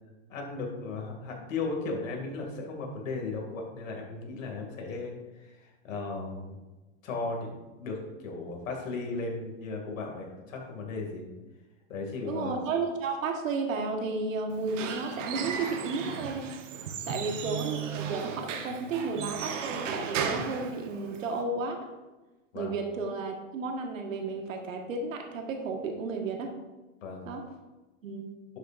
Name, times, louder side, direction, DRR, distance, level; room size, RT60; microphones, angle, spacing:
voice 1, 0.3-6.6 7.0-11.3 11.9-12.6 17.0-17.4 22.5-22.7 27.0-27.3, left 3 dB, 85° left, 0 dB, 2.7 m, -36 dB
voice 2, 12.2-16.5 17.1-21.9 22.5-26.5 27.2-27.4 28.0-28.3, right 4 dB, 85° right, 3 dB, 1.7 m, -33 dB
Squeak / Wood, 14.5-21.4, right 7 dB, 70° right, 1.3 m, -35 dB
11.5 x 6.8 x 2.6 m, 1.1 s
hypercardioid pair, 140°, 38 cm